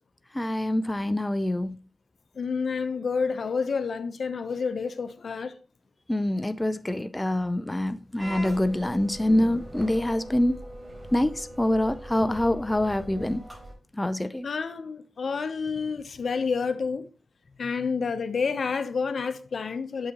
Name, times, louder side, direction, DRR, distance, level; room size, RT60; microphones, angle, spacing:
voice 1, 0.3-1.8 6.1-10.6 11.1-13.4 14.0-14.5, left 1 dB, 15° left, 0.5 m, -25 dB
voice 2, 2.4-5.5 14.4-17.1 17.6-20.1, left 5 dB, 70° left, 0.8 m, -29 dB
sound 1, 8.2-13.7, equal, 25° right, 3.6 m, -40 dB
7.7 x 6.5 x 2.9 m
cardioid pair, 65°, 0 cm